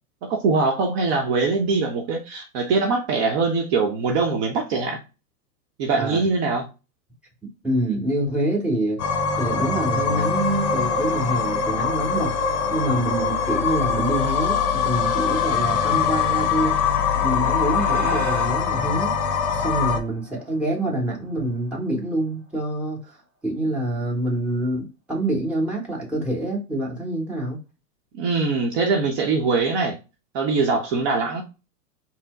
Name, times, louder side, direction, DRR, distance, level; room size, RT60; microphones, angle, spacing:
voice 1, 0.2-5.0 5.8-6.6 28.1-29.9 30.3-31.4, right 4 dB, 40° right, 0.8 m, -22 dB
voice 2, 7.6-9.0 9.4-12.3 12.7-16.8 17.1-19.1 19.5-23.2 23.4-27.6, right 1 dB, 5° right, 1.2 m, -26 dB
sound 1, 9.0-20.0, left 6 dB, 50° left, 1.1 m, -23 dB
sound 2, 16.7-21.5, right 2 dB, 20° right, 1.1 m, -36 dB
4.3 x 2.1 x 4.3 m
hypercardioid pair, 135°, 48 cm